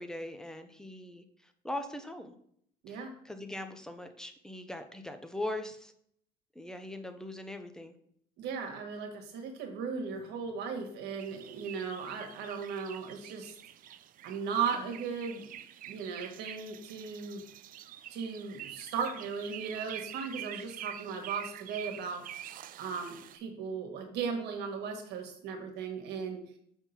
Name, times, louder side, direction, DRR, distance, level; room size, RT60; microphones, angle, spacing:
voice 1, 0.0-2.3 2.9-5.9 6.5-8.0, left 1 dB, 5° left, 7 dB, 0.7 m, -41 dB
voice 2, 2.8-3.1 8.4-13.5 14.2-15.5 15.8-17.4 18.1-22.2 22.8-26.4, right 6 dB, 85° right, 3 dB, 1.5 m, -37 dB
sound 1, 11.2-23.4, right 11 dB, 55° right, 0.4 m, -46 dB
6.0 x 3.7 x 5.7 m, 0.68 s
cardioid pair, 110°, 17 cm